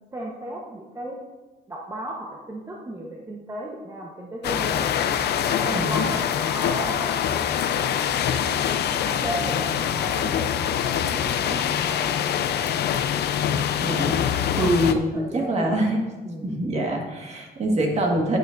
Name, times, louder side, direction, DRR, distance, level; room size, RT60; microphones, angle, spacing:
voice 1, 0.1-1.2 1.7-4.9 5.4-7.2 9.0-12.4 14.3-15.8 16.2-16.6, right 1 dB, 20° right, -2 dB, 1.0 m, -35 dB
sound 1, 4.4-14.9, left 9 dB, 70° left, 0.6 m, -24 dB
voice 2, 5.7-6.2 13.5-16.0 16.4-18.4, right 1 dB, 40° right, 1 dB, 1.7 m, -25 dB
11.5 x 9.2 x 2.6 m, 1.2 s
cardioid pair, 130°, 18 cm